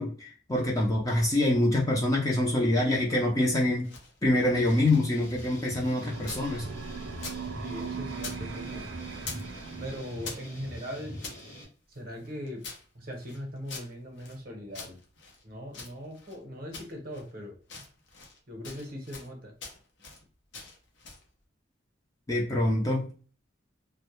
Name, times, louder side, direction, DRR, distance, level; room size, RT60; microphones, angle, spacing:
voice 1, 0.0-3.9 4.2-6.7 22.3-23.1, left 1 dB, 20° left, -3 dB, 0.5 m, -25 dB
sound 1, 3.6-6.5 6.8-8.4 8.7-9.5 9.8-11.4 11.9-14.4 14.7-16.4 16.7-17.3 17.6-18.4 18.6-19.3 19.6-20.2 20.5-21.3, left 4 dB, 65° left, 0.6 m, -45 dB
sound 2, 4.5-11.6, equal, 40° left, 0.9 m, -43 dB
sound 3, 6.0-10.7, right 5 dB, 70° right, 0.3 m, -40 dB
voice 2, 7.6-8.9 9.8-11.2 11.9-12.7 12.9-15.0 15.4-17.6 18.5-19.5, equal, 50° right, 1 dB, 0.7 m, -40 dB
2.1 x 2.1 x 2.9 m, 0.39 s
head